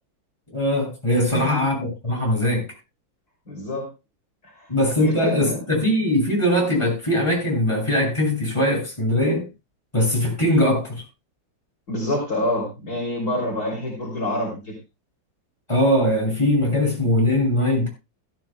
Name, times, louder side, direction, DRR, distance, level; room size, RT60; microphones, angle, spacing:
voice 1, 0.5-2.7 4.7-9.5 9.9-11.0 15.7-17.9, left 1 dB, 15° left, 7.1 m, -21 dB
voice 2, 1.3-1.6 3.5-3.9 4.4-4.7 5.0-5.6 11.9-14.7, left 1 dB, 50° left, 3.8 m, -27 dB
16.5 x 13.5 x 2.3 m
omnidirectional pair, 2.1 m